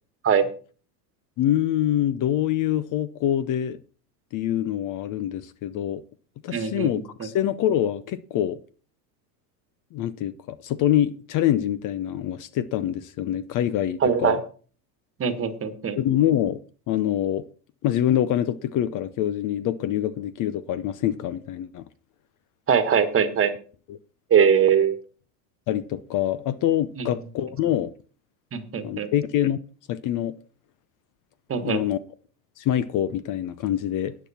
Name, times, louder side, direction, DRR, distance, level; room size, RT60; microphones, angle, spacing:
voice 1, 1.4-3.8 4.3-6.0 6.4-8.6 9.9-14.4 16.0-16.6 16.9-17.5 17.8-21.8 23.9-24.0 25.7-27.9 28.8-29.6 29.9-30.4 31.6-32.0 32.6-34.2, left 11 dB, 40° left, 0.7 m, -25 dB
voice 2, 6.5-6.9 14.0-14.4 15.2-16.0 22.7-23.5 24.3-25.0 27.0-27.1 28.5-29.1 31.5-31.8, right 7 dB, 25° right, 1.5 m, -21 dB
13.0 x 9.4 x 4.2 m
hypercardioid pair, 105°, 49 cm